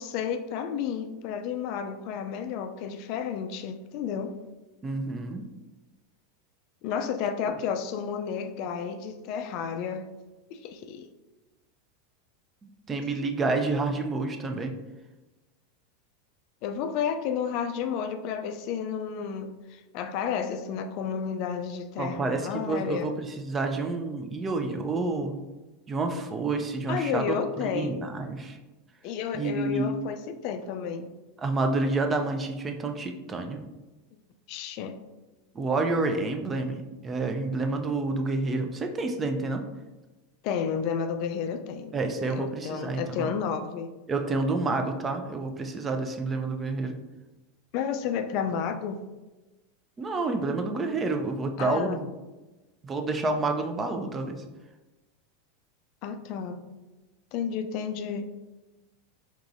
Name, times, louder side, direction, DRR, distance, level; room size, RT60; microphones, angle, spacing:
voice 1, 0.0-4.4 6.8-10.1 10.5-11.1 16.6-23.1 26.9-28.0 29.0-31.1 34.5-35.0 40.4-42.0 42.3-43.9 47.7-49.0 51.6-52.0 56.0-56.6 57.3-58.3, left 7 dB, 55° left, 7 dB, 0.3 m, -31 dB
voice 2, 4.8-5.4 12.6-14.8 22.0-25.4 25.9-28.6 29.3-29.9 31.4-33.6 35.5-39.6 41.9-43.3 44.1-46.9 50.0-52.1 52.8-54.4, right 3 dB, 25° right, 5 dB, 0.5 m, -29 dB
4.6 x 2.9 x 2.5 m, 1.1 s
hypercardioid pair, 90°, 0 cm